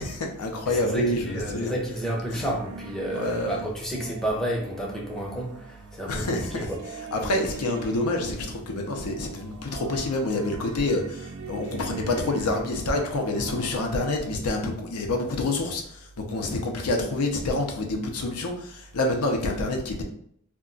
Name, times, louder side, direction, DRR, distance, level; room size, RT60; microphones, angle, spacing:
voice 1, 0.0-1.7 2.3-2.5 3.1-3.6 6.1-6.7 7.1-20.0, left 2 dB, 85° left, 2 dB, 0.6 m, -27 dB
voice 2, 0.6-6.3 6.5-6.8, right 1 dB, ahead, -2 dB, 0.5 m, -31 dB
sound 1, 2.4-14.3, right 5 dB, 80° right, 0.4 m, -42 dB
2.3 x 2.2 x 3.7 m, 0.66 s
head